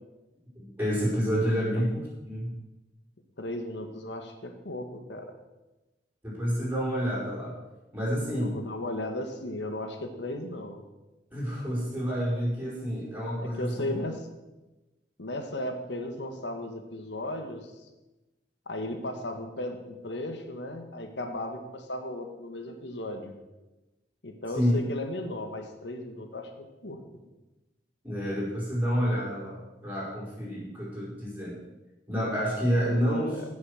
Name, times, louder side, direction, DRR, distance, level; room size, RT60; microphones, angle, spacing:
voice 1, 0.5-2.5 6.2-7.6 7.9-8.5 11.3-14.0 24.5-24.7 28.0-31.6 32.1-33.4, equal, 10° right, -6 dB, 5.0 m, -29 dB
voice 2, 1.4-1.8 3.4-5.3 8.3-10.8 13.4-14.3 15.2-17.9 18.7-23.4 24.2-27.0 32.9-33.4, left 1 dB, 80° left, 5 dB, 1.5 m, -36 dB
16.0 x 6.3 x 6.5 m, 1.1 s
head